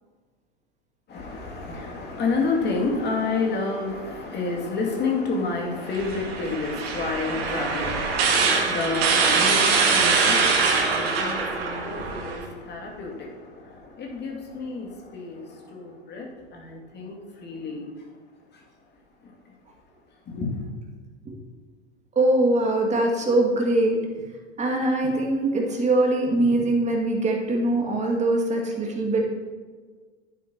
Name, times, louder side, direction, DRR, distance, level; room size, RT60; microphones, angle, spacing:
voice 1, 1.1-17.9 20.3-20.7, left 3 dB, 30° left, 0 dB, 2.3 m, -30 dB
sound 1, 5.9-12.4, right 4 dB, 60° right, 1.8 m, -23 dB
voice 2, 22.2-24.0 24.6-29.3, right 2 dB, 20° right, 1 dB, 2.0 m, -22 dB
11.0 x 9.0 x 2.8 m, 1.5 s
hypercardioid pair, 95°, 34 cm